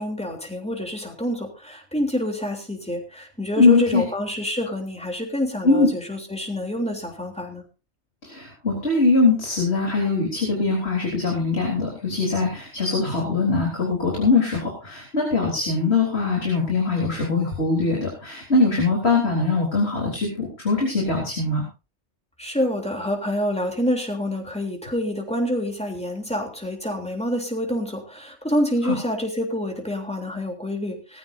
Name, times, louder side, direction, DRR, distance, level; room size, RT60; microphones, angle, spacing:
voice 1, 0.0-7.6 22.4-31.2, equal, 5° left, 2 dB, 3.3 m, -27 dB
voice 2, 3.6-4.0 5.6-5.9 8.2-21.6 28.8-28.9, left 3 dB, 65° left, -1 dB, 4.0 m, -22 dB
20.0 x 14.5 x 2.7 m, 0.31 s
omnidirectional pair, 1.2 m